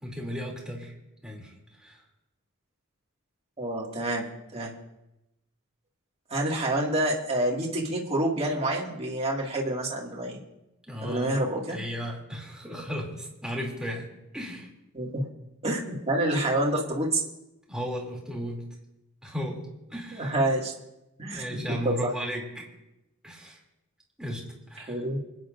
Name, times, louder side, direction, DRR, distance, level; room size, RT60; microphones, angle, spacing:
voice 1, 0.0-0.9 1.2-1.5 1.8-2.0 10.9-11.4 11.7-14.1 14.3-14.7 17.7-18.6 19.2-20.4 21.3-22.7 23.2-23.6 24.2-24.4 24.7-24.9, equal, 5° right, -3 dB, 2.8 m, -35 dB
voice 2, 3.6-4.7 6.3-10.4 11.0-11.8 14.9-15.3 15.6-17.2 20.1-20.7 21.2-22.1 24.9-25.2, right 1 dB, 30° right, -2 dB, 2.1 m, -28 dB
27.5 x 9.6 x 2.6 m, 0.92 s
head